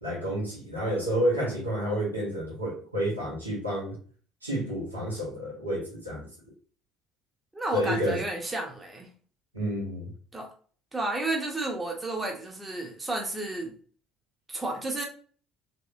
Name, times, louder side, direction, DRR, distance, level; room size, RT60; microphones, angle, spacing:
voice 1, 0.0-4.0 4.4-6.3 7.7-8.2 9.5-10.1, equal, 85° right, 1.0 m, -30 dB
voice 2, 7.5-9.1 10.3-10.5 10.9-13.7 14.5-15.0, right 2 dB, 15° right, 0.8 m, -32 dB
3.1 x 2.8 x 2.6 m
figure-of-eight pair, 55°, 0 cm